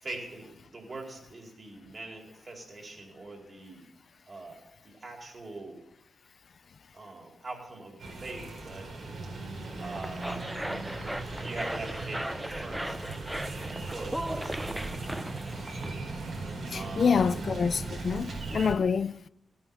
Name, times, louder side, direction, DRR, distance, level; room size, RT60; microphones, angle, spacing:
voice 1, 0.0-3.9 4.3-5.8 6.9-8.9 9.8-10.4 11.4-12.2 12.5-13.0 13.9-14.9 15.4-16.1 16.7-17.4, right 2 dB, 35° right, 4.5 m, -43 dB
sound 1, 8.0-18.7, right 3 dB, 60° right, 4.9 m, -38 dB
sound 2, 9.7-15.9, right 1 dB, 5° right, 0.6 m, -37 dB
voice 2, 16.7-19.3, left 6 dB, 55° left, 0.5 m, -27 dB
17.5 x 9.6 x 7.2 m
wide cardioid pair, 115°, 0 cm